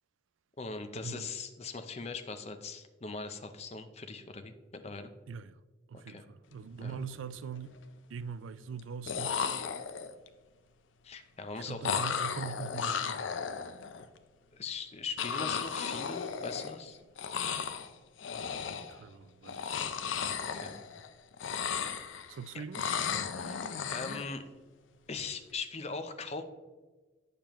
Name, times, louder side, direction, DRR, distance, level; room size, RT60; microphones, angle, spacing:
voice 1, 0.6-5.1 5.9-6.2 6.8-7.0 11.0-11.9 14.5-17.0 20.5-20.8 21.6-21.9 22.5-22.6 23.3-24.4 25.1-26.4, left 4 dB, 35° left, 0.6 m, -41 dB
voice 2, 5.3-5.6 5.9-7.8 8.1-9.4 11.6-13.3 18.9-19.7 22.3-22.9, right 6 dB, 90° right, 0.4 m, -42 dB
sound 1, 6.6-6.8 7.2-7.8 8.8-8.9 9.1-10.3 11.8-14.0 15.2-16.9 17.2-17.9 18.2-19.0 19.4-21.1 21.3-22.4 22.7-24.3, left 6 dB, 85° left, 0.5 m, -35 dB
8.7 x 6.7 x 3.0 m
head